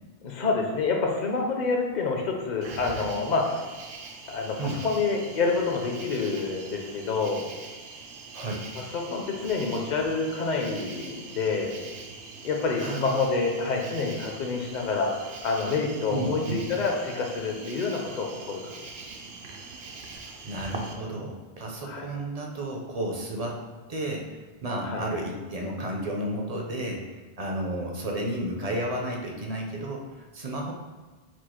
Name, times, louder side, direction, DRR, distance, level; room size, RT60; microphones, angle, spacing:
voice 1, 0.2-3.7 4.3-7.4 8.8-11.8 12.4-18.6 21.8-22.1 24.8-25.0, left 4 dB, 50° left, 1 dB, 0.7 m, -28 dB
Cricket, 2.6-20.9, right 4 dB, 70° right, 0.8 m, -42 dB
voice 2, 12.8-13.2 16.1-16.6 20.4-23.6 23.9-30.7, right 1 dB, 45° right, 0 dB, 0.6 m, -32 dB
4.6 x 2.4 x 4.3 m, 1.4 s
omnidirectional pair, 1.1 m